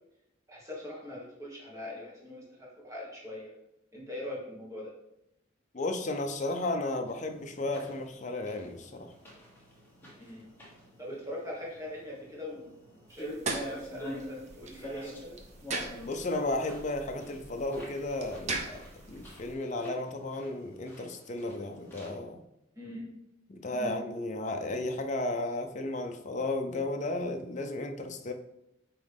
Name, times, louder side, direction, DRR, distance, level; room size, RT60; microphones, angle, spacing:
voice 1, 0.5-3.5 3.9-4.9 10.2-10.5 11.0-12.7 13.1-15.4 22.7-23.1 23.7-24.0, left 1 dB, 15° right, -4 dB, 1.6 m, -41 dB
voice 2, 5.7-9.1 16.0-22.4 23.5-28.3, left 2 dB, 35° left, 5 dB, 0.6 m, -34 dB
sound 1, 7.1-22.1, equal, 10° left, 1.6 m, -48 dB
sound 2, 13.1-19.5, right 3 dB, 35° right, 0.7 m, -40 dB
8.8 x 3.1 x 3.5 m, 0.86 s
head